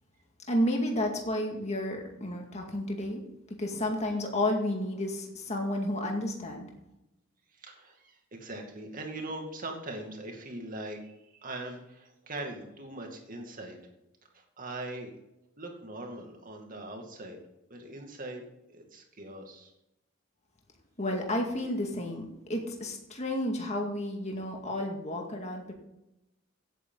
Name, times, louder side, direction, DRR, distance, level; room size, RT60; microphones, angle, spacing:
voice 1, 0.5-3.2 3.5-6.7 21.0-25.7, left 1 dB, 35° left, 1 dB, 2.1 m, -31 dB
voice 2, 7.6-13.8 14.3-15.1 15.6-17.4 17.7-18.4 18.7-19.7, right 2 dB, 45° right, 2 dB, 2.4 m, -41 dB
16.0 x 8.5 x 3.9 m, 0.89 s
head